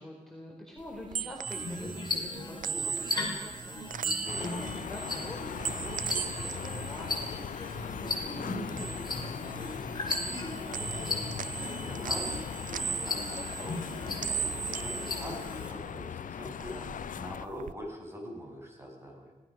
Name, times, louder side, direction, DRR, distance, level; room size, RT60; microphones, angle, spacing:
voice 1, 0.0-3.2 3.6-3.8 4.1-7.3 7.9-8.3 8.6-10.0 10.7-10.9 16.7-16.9, left 1 dB, 5° left, -2 dB, 4.3 m, -47 dB
sound 1, 0.8-8.1 8.4-9.8 10.1-16.1 16.4-17.7, right 8 dB, 90° right, 0.7 m, -38 dB
sound 2, 1.4-15.7, left 2 dB, 35° left, 5.8 m, -37 dB
sound 3, 4.3-17.5, left 8 dB, 90° left, 0.6 m, -40 dB
voice 2, 7.8-8.3 11.5-14.2 14.7-16.7 17.1-19.3, equal, 20° right, 0 dB, 7.2 m, -44 dB
25.5 x 18.0 x 6.4 m, 1.1 s
wide cardioid pair, 130°, 13 cm